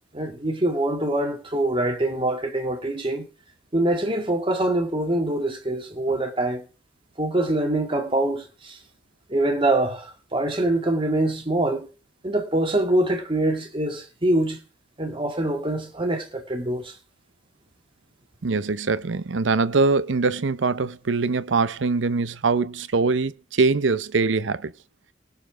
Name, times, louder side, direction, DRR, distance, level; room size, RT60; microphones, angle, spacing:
voice 1, 0.1-3.3 3.7-6.6 7.2-8.8 9.3-11.9 12.2-14.6 15.0-16.9, right 1 dB, 30° right, 2.1 m, -24 dB
voice 2, 18.4-24.7, right 4 dB, 70° right, 0.7 m, -23 dB
20.0 x 7.0 x 5.0 m
head